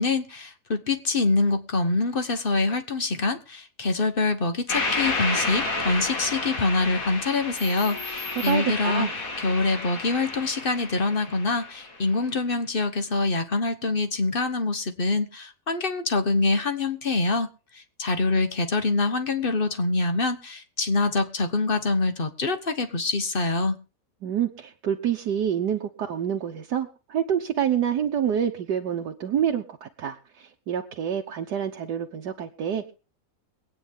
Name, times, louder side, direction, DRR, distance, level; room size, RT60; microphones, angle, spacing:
voice 1, 0.0-9.1 9.4-17.5 17.7-23.8, left 3 dB, 35° left, 9 dB, 1.2 m, -25 dB
sound 1, 4.7-12.0, left 3 dB, 50° left, 2.4 m, -31 dB
voice 2, 8.3-9.1 24.2-32.9, right 9 dB, 70° right, 2 dB, 1.6 m, -27 dB
22.5 x 9.2 x 3.6 m, 0.33 s
omnidirectional pair, 1.9 m